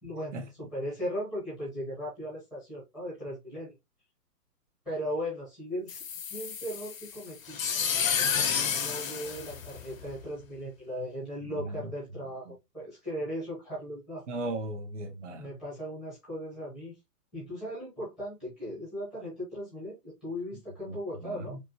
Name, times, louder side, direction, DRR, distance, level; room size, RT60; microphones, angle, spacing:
voice 1, 0.0-3.7 4.8-6.0 6.3-7.6 8.6-14.2 15.4-16.9 17.3-21.6, equal, ahead, 0.8 m, -37 dB
sound 1, 5.9-10.2, left 7 dB, 60° left, 0.9 m, -31 dB
voice 2, 11.4-11.9 12.4-12.5 14.3-15.5 20.8-21.6, right 2 dB, 50° right, 1.2 m, -37 dB
5.0 x 2.2 x 2.9 m
hypercardioid pair, 175°, 47 cm